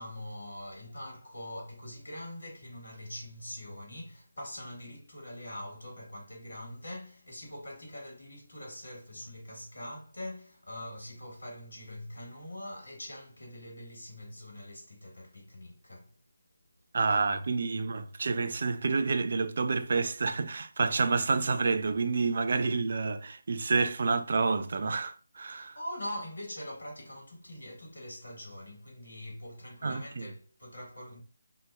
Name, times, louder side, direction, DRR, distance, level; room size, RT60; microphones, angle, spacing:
voice 1, 0.0-16.1 25.5-31.2, left 1 dB, 75° left, 1.5 m, -43 dB
voice 2, 16.9-25.8 29.8-30.3, right 4 dB, 50° right, 0.3 m, -29 dB
4.1 x 2.1 x 2.2 m
figure-of-eight pair, 155°, 0 cm